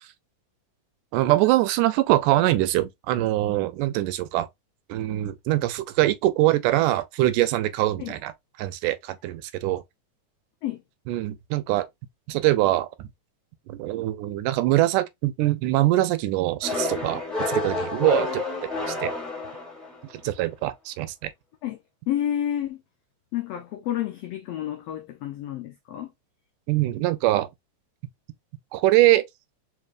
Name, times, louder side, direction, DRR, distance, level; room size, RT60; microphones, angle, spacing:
voice 1, 1.1-4.5 4.9-8.3 8.6-9.8 11.1-11.8 12.3-13.1 13.7-18.4 18.9-19.1 20.2-21.3 26.7-27.5 28.7-29.3, right 16 dB, 80° right, 2.1 m, -23 dB
sound 1, 16.6-20.1, left 3 dB, ahead, 0.7 m, -29 dB
voice 2, 22.1-22.8 23.3-26.1, left 11 dB, 85° left, 1.4 m, -30 dB
4.8 x 3.2 x 2.4 m
omnidirectional pair, 3.7 m